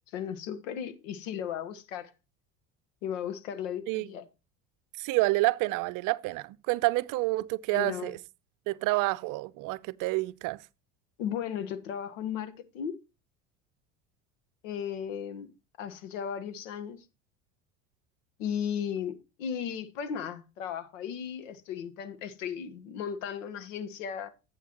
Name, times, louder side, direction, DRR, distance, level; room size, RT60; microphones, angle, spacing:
voice 1, 0.1-2.1 3.0-4.2 7.7-8.1 11.2-13.0 14.6-15.5 15.8-17.0 18.4-24.3, left 8 dB, 80° left, 1.4 m, -35 dB
voice 2, 5.0-8.2 8.7-10.6, right 21 dB, 55° right, 0.6 m, -28 dB
11.5 x 8.1 x 3.0 m
hypercardioid pair, 85°, 38 cm